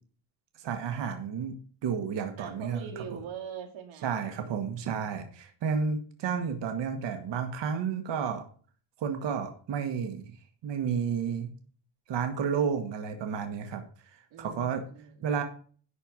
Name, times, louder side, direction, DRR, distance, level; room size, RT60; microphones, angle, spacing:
voice 1, 0.6-3.2 4.0-8.5 9.0-10.3 10.6-11.5 12.1-13.8 14.1-14.8 15.2-15.4, right 6 dB, 65° right, 6 dB, 1.5 m, -31 dB
voice 2, 2.4-4.7 14.3-15.4, right 7 dB, 80° right, 5 dB, 2.3 m, -43 dB
11.5 x 4.4 x 7.3 m, 0.43 s
cardioid pair, 155°, 47 cm